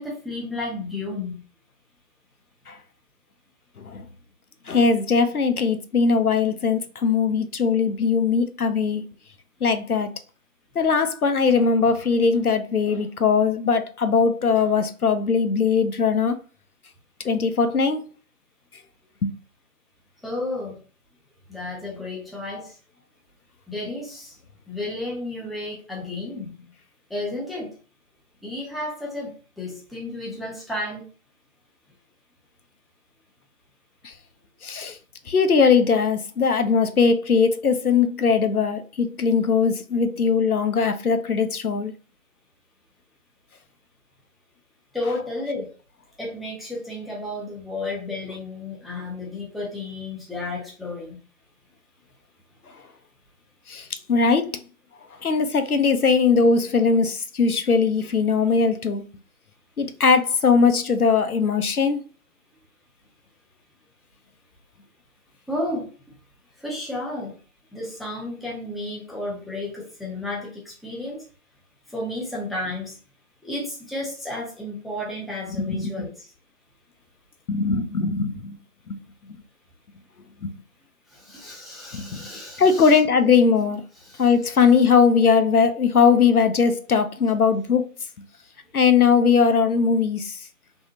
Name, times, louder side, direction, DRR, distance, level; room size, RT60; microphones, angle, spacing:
voice 1, 0.0-1.4 20.2-20.8 21.5-22.8 23.7-24.4 24.7-26.7 27.1-27.8 28.4-31.1 44.9-45.7 46.2-51.2 65.5-65.9 66.6-67.3 67.7-71.2 71.9-73.0 73.4-76.3 81.1-83.0 84.0-84.3 88.7-88.8, left 2 dB, ahead, 0.6 m, -32 dB
voice 2, 4.7-9.0 9.6-10.1 10.8-16.4 17.2-18.0 19.2-19.3 34.0-34.1 34.6-35.0 35.3-41.9 53.7-54.5 55.2-59.0 59.8-62.0 75.5-75.9 77.5-78.6 78.9-79.0 80.4-80.5 81.9-82.3 82.6-83.8 84.2-87.9 88.7-90.4, left 5 dB, 85° left, 0.6 m, -20 dB
3.4 x 2.1 x 2.7 m
figure-of-eight pair, 180°, 43 cm